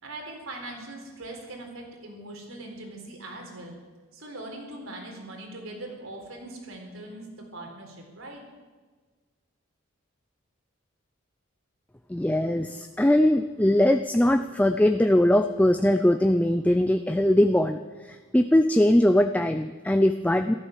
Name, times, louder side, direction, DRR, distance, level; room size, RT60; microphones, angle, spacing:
voice 1, 0.0-3.8 4.1-8.4, right 2 dB, 75° right, 2 dB, 4.0 m, -41 dB
voice 2, 12.1-20.5, left 1 dB, 5° left, 8 dB, 0.4 m, -21 dB
14.5 x 13.0 x 7.4 m, 1.4 s
head